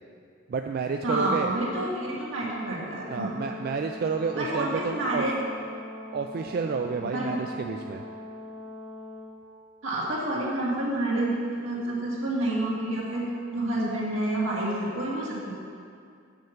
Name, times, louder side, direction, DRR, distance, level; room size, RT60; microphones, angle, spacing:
voice 1, 0.5-1.5 2.4-2.5 3.1-5.2 6.1-8.0, right 5 dB, 50° right, 4 dB, 0.3 m, -30 dB
voice 2, 1.0-3.3 4.4-5.4 7.1-7.4 9.8-11.4 11.6-13.2 13.5-15.5, right 1 dB, 80° right, -5 dB, 2.1 m, -28 dB
Brass instrument, 2.9-9.3, left 2 dB, 75° left, 2.3 m, -42 dB
6.4 x 5.7 x 7.2 m, 2.4 s
head